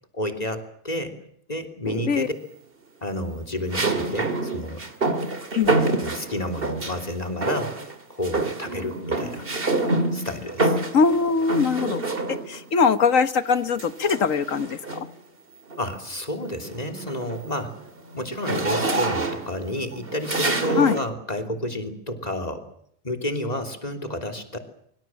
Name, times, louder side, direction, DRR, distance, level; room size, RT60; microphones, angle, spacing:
voice 1, 0.1-1.1 1.5-2.3 3.0-4.8 6.0-7.8 8.1-9.5 10.1-10.8 15.8-17.8 18.1-22.7 23.0-24.6, left 1 dB, 30° left, 5 dB, 3.2 m, -30 dB
sound 1, 1.9-2.4 3.7-7.1 7.4-8.0 8.2-12.7 13.8-15.2 15.7-16.0 16.3-21.1, right 2 dB, 45° right, 2.6 m, -27 dB
voice 2, 10.9-12.0 12.5-14.8 20.8-21.0, left 5 dB, 85° left, 12 dB, 1.7 m, -21 dB
24.5 x 24.5 x 7.6 m, 0.69 s
omnidirectional pair, 1.3 m